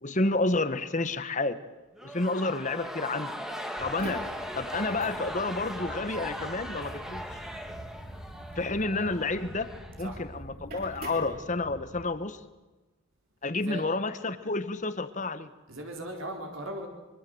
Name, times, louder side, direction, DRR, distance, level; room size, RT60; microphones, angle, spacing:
voice 1, 0.0-1.6 2.0-3.4 3.8-4.2 4.6-7.2 8.5-9.7 10.0-12.4 13.4-15.5, left 2 dB, 35° left, 12 dB, 1.3 m, -30 dB
sound 1, 2.0-10.4, equal, ahead, 1.9 m, -39 dB
sound 2, 3.8-12.0, right 1 dB, 45° right, 7.9 m, -44 dB
voice 2, 15.7-16.9, right 1 dB, 70° right, 2 dB, 4.0 m, -38 dB
24.0 x 23.5 x 7.9 m, 1.2 s
head